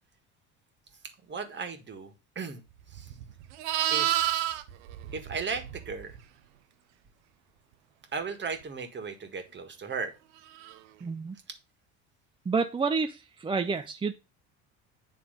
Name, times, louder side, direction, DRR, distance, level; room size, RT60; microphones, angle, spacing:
voice 1, 1.2-2.6 2.9-3.1 3.9-4.6 5.1-6.1 8.1-10.1, right 5 dB, 35° right, 6 dB, 1.7 m, -36 dB
Livestock farm animals working animals, 2.9-6.2 10.6-10.8, right 12 dB, 85° right, 0.8 m, -30 dB
voice 2, 11.0-11.4 12.5-14.1, right 4 dB, 15° right, 7 dB, 0.5 m, -29 dB
8.9 x 3.4 x 5.1 m, 0.29 s
supercardioid pair, 80°, 33 cm